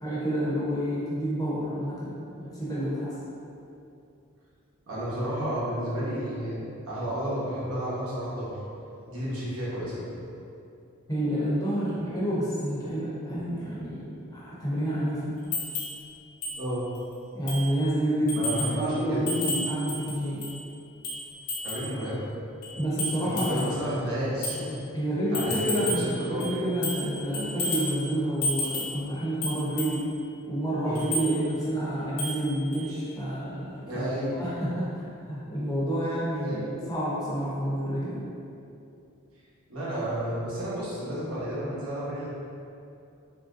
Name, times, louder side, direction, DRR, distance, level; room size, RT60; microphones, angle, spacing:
voice 1, 0.0-3.1 11.1-15.3 17.3-20.5 22.8-23.9 24.9-30.0 30.5-38.3, right 1 dB, 15° left, -8 dB, 0.7 m, -29 dB
voice 2, 4.9-8.5 9.1-10.1 16.5-16.9 18.4-19.3 21.6-22.2 23.2-24.8 25.3-26.5 30.8-31.1 33.9-34.4 36.0-36.1 36.4-36.6 39.7-42.3, equal, 80° right, -8 dB, 0.9 m, -31 dB
sound 1, 15.5-16.0 16.4-16.6 16.9-17.0 17.5-17.7 18.3-18.8 19.3-20.6 21.0-21.9 22.6-23.8 24.4-24.6 25.3-26.1 26.4-27.1 27.3-28.0 28.4-29.0 29.4-30.0 30.9-31.3 32.2-32.4 32.7-32.8, left 1 dB, 80° left, 0.8 m, -32 dB
3.2 x 2.6 x 2.5 m, 2.6 s
head